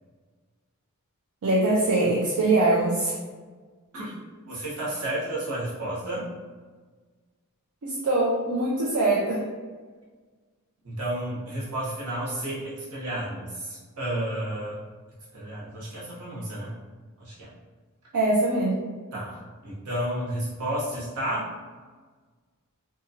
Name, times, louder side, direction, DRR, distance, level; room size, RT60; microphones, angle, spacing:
voice 1, 1.4-3.1 7.8-9.5 18.1-18.9, right 2 dB, 70° right, -4 dB, 0.4 m, -23 dB
voice 2, 4.4-6.3 10.8-14.8 15.3-16.7 17.2-17.5 19.1-21.5, right 1 dB, 90° right, -7 dB, 1.1 m, -32 dB
2.7 x 2.3 x 2.7 m, 1.4 s
head